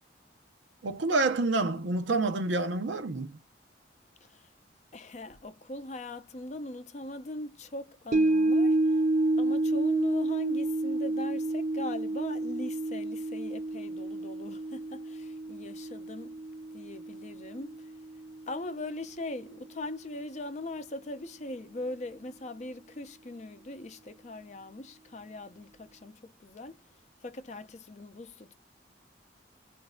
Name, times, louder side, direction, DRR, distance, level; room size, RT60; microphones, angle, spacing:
voice 1, 0.8-3.4, right 3 dB, 90° right, 0.7 m, -28 dB
voice 2, 4.9-9.0 9.4-16.4 16.7-17.9 18.5-26.8 27.2-28.5, left 2 dB, 40° left, 0.5 m, -40 dB
sound 1, 8.1-18.5 18.9-19.0, right 2 dB, 40° right, 0.4 m, -29 dB
4.1 x 2.6 x 2.2 m
head